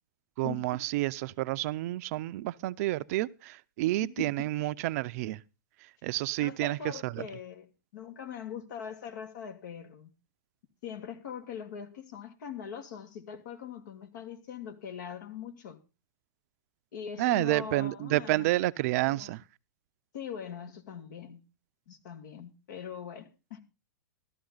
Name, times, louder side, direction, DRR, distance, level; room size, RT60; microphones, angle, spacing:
voice 1, 0.4-5.4 6.0-7.3 17.2-19.4, right 17 dB, 50° right, 0.6 m, -30 dB
voice 2, 4.2-4.5 6.4-7.7 7.9-10.1 10.8-15.8 16.9-18.5 19.1-19.4 20.1-21.4 21.9-23.6, left 8 dB, 65° left, 2.5 m, -42 dB
14.5 x 12.5 x 4.0 m
hypercardioid pair, 125°, 11 cm